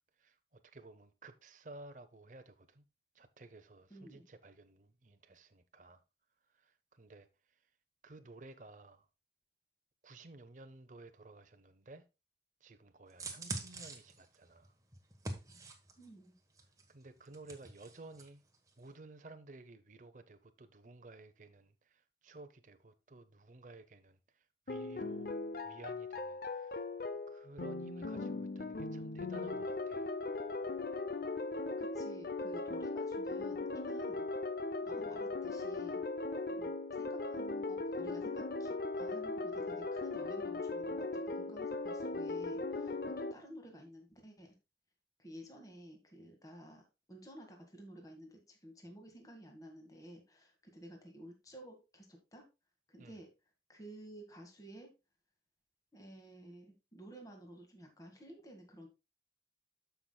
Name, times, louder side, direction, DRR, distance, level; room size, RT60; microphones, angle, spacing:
voice 1, 0.2-2.8 3.1-6.0 6.5-7.3 8.0-9.1 10.0-12.0 12.6-14.7 16.9-18.4 18.8-25.3 25.6-26.8 27.3-30.1 53.0-53.2, right 2 dB, 45° right, 0.7 m, -54 dB
voice 2, 3.9-4.3 16.0-16.4 31.8-34.2 34.8-36.0 36.5-44.5 45.2-52.4 52.9-53.3 53.7-54.9 55.9-58.9, right 1 dB, 20° left, 1.9 m, -53 dB
sound 1, 13.1-16.1 16.6-18.3 18.5-18.7, right 2 dB, 20° right, 1.2 m, -44 dB
sound 2, 24.7-43.3, left 3 dB, 55° left, 0.6 m, -38 dB
13.5 x 5.8 x 2.3 m
head